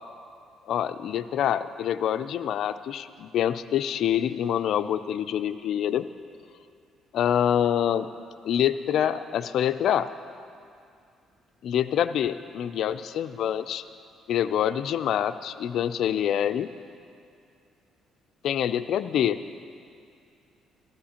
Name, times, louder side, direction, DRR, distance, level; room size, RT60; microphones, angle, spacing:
voice 1, 0.7-6.1 7.1-8.1 8.4-10.1 11.6-13.8 14.3-16.7 18.4-19.4, left 10 dB, 70° left, 11 dB, 0.4 m, -26 dB
15.0 x 13.5 x 2.9 m, 2.4 s
cardioid pair, 90°, 0 cm